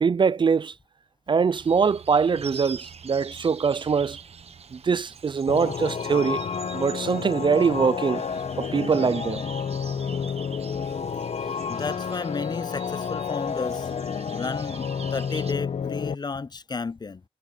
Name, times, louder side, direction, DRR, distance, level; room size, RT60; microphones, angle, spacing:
voice 1, 0.0-0.7 1.3-4.2 4.7-6.4 6.7-8.2 8.6-9.4, right 5 dB, 45° right, 0.4 m, -23 dB
sound 1, 1.5-15.5, right 6 dB, 75° right, 1.1 m, -45 dB
sound 2, 5.5-16.1, left 6 dB, 85° left, 1.1 m, -30 dB
voice 2, 11.7-13.9 14.3-14.8 15.1-17.2, left 4 dB, 40° left, 0.5 m, -32 dB
wide cardioid pair, 75°, 11 cm